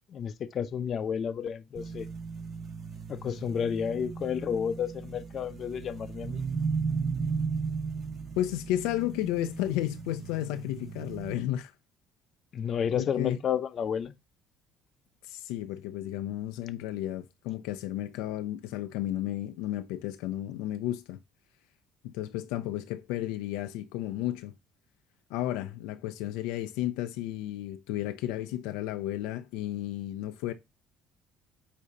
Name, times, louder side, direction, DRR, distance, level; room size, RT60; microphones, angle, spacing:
voice 1, 0.1-2.1 3.1-6.4 12.5-14.1, left 8 dB, 50° left, 0.7 m, -31 dB
sound 1, 1.7-11.3, right 5 dB, 45° right, 2.9 m, -35 dB
voice 2, 8.4-11.7 12.9-13.4 15.2-21.2 22.0-24.5 25.3-30.5, left 13 dB, 90° left, 0.5 m, -33 dB
8.4 x 2.8 x 4.0 m
cardioid pair, 95°, 0 cm